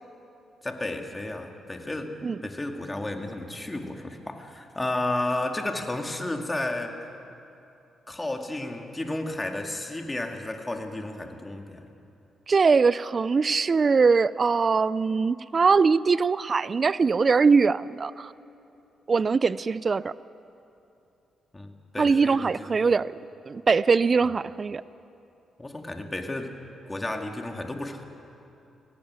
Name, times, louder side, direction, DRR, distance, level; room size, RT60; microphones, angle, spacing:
voice 1, 0.6-2.2 2.4-6.9 8.1-11.9 21.5-22.8 25.6-26.6 26.9-28.0, left 2 dB, 20° left, 4 dB, 2.1 m, -32 dB
voice 2, 12.5-18.3 19.1-20.1 22.0-23.1 23.5-24.8, right 5 dB, 40° right, 18 dB, 0.4 m, -22 dB
17.5 x 15.5 x 9.5 m, 2.8 s
cardioid pair, 75°, 0 cm